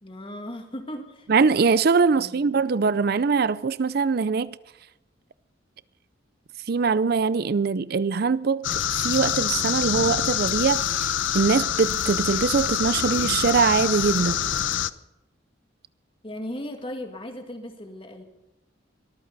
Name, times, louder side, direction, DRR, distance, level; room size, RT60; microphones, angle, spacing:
voice 1, 0.0-1.3 2.1-2.5 16.2-18.2, left 1 dB, 30° left, 2.3 m, -37 dB
voice 2, 1.3-4.6 6.7-8.7 8.9-14.4, right 5 dB, 55° right, 0.5 m, -22 dB
sound 1, 8.6-14.9, left 9 dB, 80° left, 0.7 m, -26 dB
23.5 x 14.0 x 4.1 m
head